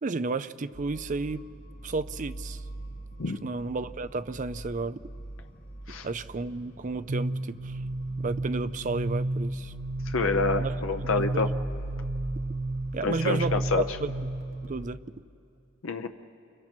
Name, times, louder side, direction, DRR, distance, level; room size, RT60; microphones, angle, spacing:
voice 1, 0.0-1.4 1.8-2.6 3.2-5.0 6.0-7.8 8.2-9.7 10.6-10.7 11.2-11.5 12.9-14.1 14.6-15.0, right 3 dB, 40° right, 13 dB, 0.5 m, -32 dB
sound 1, 0.7-14.9, right 1 dB, 45° left, 2.8 m, -42 dB
sound 2, 7.1-14.6, right 2 dB, 85° right, 1.4 m, -32 dB
voice 2, 10.1-11.5 13.0-13.8 15.8-16.1, left 3 dB, 80° left, 7 dB, 0.8 m, -27 dB
29.0 x 29.0 x 4.5 m, 2.5 s
head